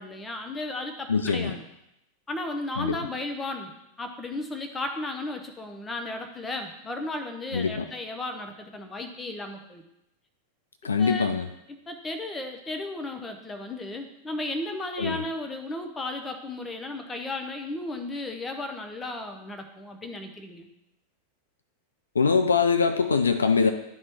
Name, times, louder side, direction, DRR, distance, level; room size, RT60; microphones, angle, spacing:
voice 1, 0.0-1.6 2.3-3.7 4.0-9.8 11.0-11.3 11.9-20.7, left 2 dB, 15° left, 4 dB, 1.0 m, -34 dB
voice 2, 1.1-1.5 2.8-3.0 7.5-7.9 10.8-11.5 15.0-15.2 22.1-23.7, left 5 dB, 75° left, 8 dB, 0.5 m, -23 dB
11.0 x 4.1 x 3.5 m, 0.85 s
figure-of-eight pair, 90°, 0 cm